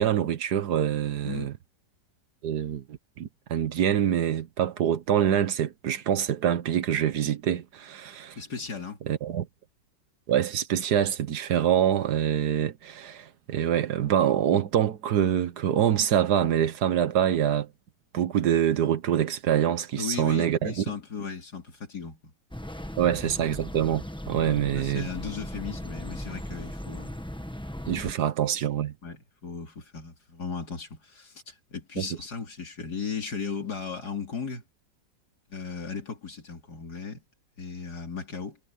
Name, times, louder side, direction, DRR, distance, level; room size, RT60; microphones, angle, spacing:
voice 1, 0.0-1.5 2.4-8.4 9.1-9.5 10.3-17.7 18.1-20.9 23.0-25.1 27.9-28.9 32.0-32.1, right 10 dB, 70° right, 1.5 m, -25 dB
voice 2, 8.4-9.0 20.0-22.3 23.0-23.1 24.5-27.1 29.0-34.6 35.5-37.2 37.6-38.6, left 5 dB, 60° left, 3.7 m, -36 dB
sound 1, 22.5-28.1, equal, 5° left, 0.9 m, -37 dB
omnidirectional pair, 1.9 m